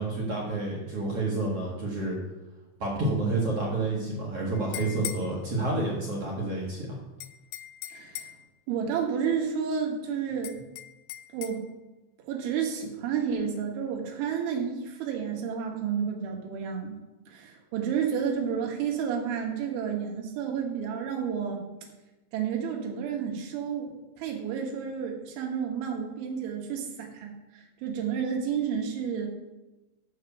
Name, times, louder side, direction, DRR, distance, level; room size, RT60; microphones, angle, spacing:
voice 1, 0.0-2.2 2.8-7.0, right 2 dB, 65° right, -4 dB, 1.4 m, -29 dB
sound 1, 4.5-5.3 7.2-8.4 10.4-11.6, left 13 dB, 80° left, 2.6 m, -39 dB
voice 2, 7.9-8.3 8.7-10.5 11.3-11.6 12.3-17.0 17.3-21.6 22.3-29.3, right 7 dB, 90° right, 1 dB, 3.7 m, -31 dB
7.8 x 7.0 x 5.8 m, 1.1 s
omnidirectional pair, 5.3 m